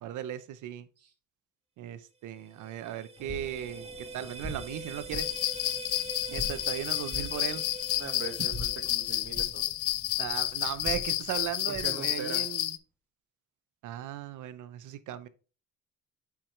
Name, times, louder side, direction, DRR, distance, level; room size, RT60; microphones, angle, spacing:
voice 1, 0.0-0.9 1.8-5.4 6.3-7.6 10.2-12.8 13.8-15.3, right 11 dB, 80° right, 0.8 m, -37 dB
sound 1, 2.4-9.4, right 2 dB, 20° right, 1.1 m, -44 dB
sound 2, 3.2-12.1, left 1 dB, 5° left, 1.8 m, -44 dB
sound 3, 5.1-12.8, left 16 dB, 80° left, 0.5 m, -31 dB
voice 2, 8.0-9.6 11.8-12.5, right 5 dB, 55° right, 1.7 m, -40 dB
8.5 x 4.6 x 3.2 m
cardioid pair, 90°, 30 cm